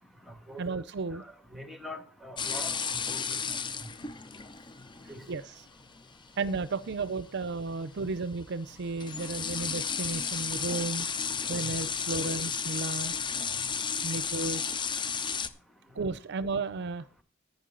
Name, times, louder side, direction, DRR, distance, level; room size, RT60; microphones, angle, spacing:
voice 1, 0.6-1.2 5.0-5.7 6.4-11.1 11.5-13.1 14.0-14.8 15.9-17.0, right 3 dB, 55° right, 15 dB, 0.6 m, -34 dB
voice 2, 1.2-3.4 5.1-5.2 9.5-9.6 11.6-11.7, left 1 dB, ahead, 7 dB, 1.7 m, -44 dB
sound 1, 2.4-15.5, left 6 dB, 25° left, 0.6 m, -34 dB
11.5 x 9.4 x 3.9 m, 0.37 s
head